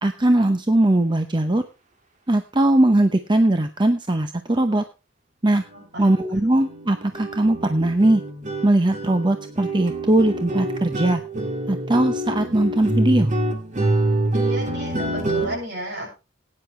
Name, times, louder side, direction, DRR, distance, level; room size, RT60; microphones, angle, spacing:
voice 1, 0.0-1.6 2.3-4.8 5.4-5.6 6.0-8.2 8.6-11.2 11.7-13.3, right 1 dB, 25° right, 7 dB, 0.8 m, -20 dB
sound 1, 5.6-5.7 6.0-6.2 6.5-15.6, right 1 dB, 40° right, 2.1 m, -26 dB
voice 2, 5.7-6.1 14.3-16.2, equal, 60° right, 1 dB, 6.7 m, -33 dB
17.5 x 9.7 x 3.3 m, 0.28 s
head